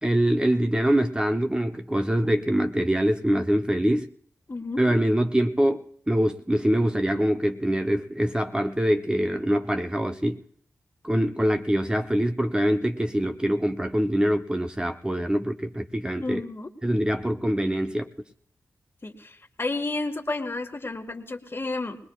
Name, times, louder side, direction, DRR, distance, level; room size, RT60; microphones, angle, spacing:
voice 1, 0.0-4.1 4.8-10.4 11.0-16.4 16.8-18.1, equal, 15° right, 6 dB, 0.8 m, -24 dB
voice 2, 4.5-4.8 16.2-16.7 19.0-22.0, left 2 dB, 40° left, 6 dB, 1.6 m, -31 dB
22.0 x 19.5 x 2.4 m, 0.64 s
cardioid pair, 40°, 6 cm